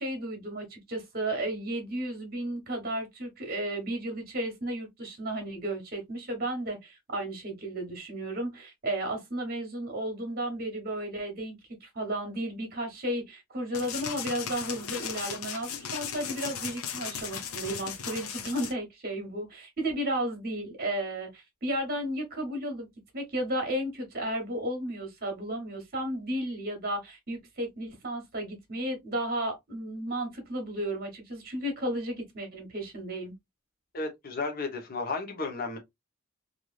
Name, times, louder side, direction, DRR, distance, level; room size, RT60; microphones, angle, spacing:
voice 1, 0.0-22.9 23.1-33.3, right 1 dB, 45° right, 1.2 m, -33 dB
sound 1, 13.7-18.7, left 7 dB, 80° left, 0.6 m, -37 dB
voice 2, 33.9-35.8, left 3 dB, 45° left, 0.9 m, -33 dB
3.2 x 2.6 x 2.3 m
head